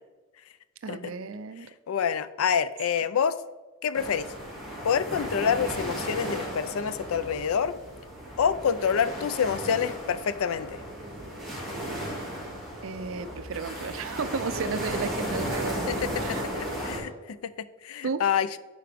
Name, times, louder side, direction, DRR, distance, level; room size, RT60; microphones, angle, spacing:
voice 1, 0.8-1.7 12.8-16.4 18.0-18.2, right 5 dB, 70° right, 13 dB, 0.4 m, -33 dB
voice 2, 1.9-3.4 3.8-4.3 4.8-7.8 8.4-10.8 15.9-18.6, left 7 dB, 90° left, 15 dB, 0.4 m, -27 dB
sound 1, 3.9-17.0, equal, ahead, 2.2 m, -35 dB
10.0 x 4.7 x 3.4 m, 1.2 s
head